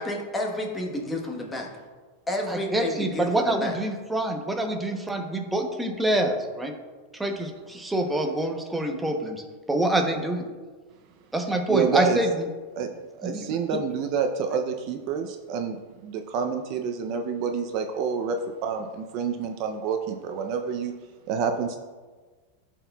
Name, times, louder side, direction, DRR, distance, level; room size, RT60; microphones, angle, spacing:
voice 1, 0.0-1.7 2.3-3.7, left 1 dB, 10° left, 0 dB, 1.1 m, -30 dB
voice 2, 2.5-6.7 7.1-9.4 9.7-10.4 11.3-12.5 13.2-13.4, right 1 dB, 5° right, 3 dB, 0.8 m, -26 dB
voice 3, 11.7-12.2 12.7-12.9 13.2-15.8 16.0-20.9 21.3-21.8, right 6 dB, 45° right, 5 dB, 0.5 m, -28 dB
13.5 x 4.5 x 2.3 m, 1.4 s
supercardioid pair, 145°, 0 cm